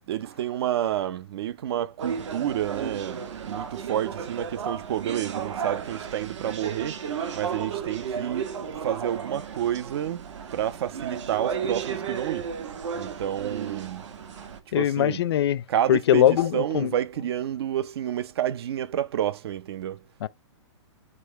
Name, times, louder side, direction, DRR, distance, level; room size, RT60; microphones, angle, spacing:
voice 1, 0.1-8.6 8.8-10.3 10.5-12.5 12.9-14.1 14.7-15.2 15.7-20.0, right 11 dB, 55° right, 0.5 m, -29 dB
sound 1, 2.0-14.6, right 7 dB, 75° right, 1.4 m, -34 dB
voice 2, 14.7-15.6 15.9-16.9 20.2-20.3, left 11 dB, 60° left, 0.6 m, -21 dB
8.3 x 3.0 x 4.5 m
hypercardioid pair, 160°, 16 cm